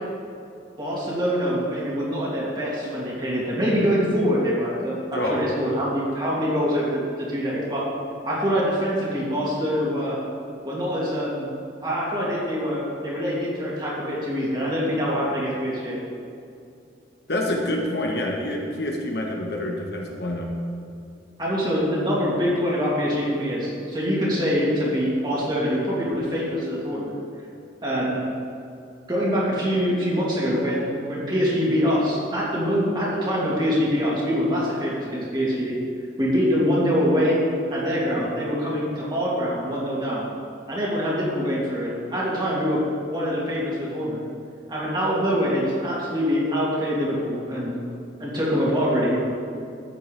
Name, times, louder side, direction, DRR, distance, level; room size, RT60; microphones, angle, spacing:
voice 1, 0.8-7.0 7.3-7.8 8.2-10.2 10.6-11.5 11.8-16.0 21.4-27.0 27.8-28.2 29.1-35.8 36.2-37.4 37.7-40.3 40.7-42.8 43.1-44.2 44.7-47.8 48.2-49.2, equal, 25° right, -6 dB, 2.6 m, -24 dB
voice 2, 5.1-5.4 17.3-20.5, left 1 dB, 60° left, 0 dB, 1.2 m, -27 dB
13.5 x 8.5 x 3.4 m, 2.5 s
head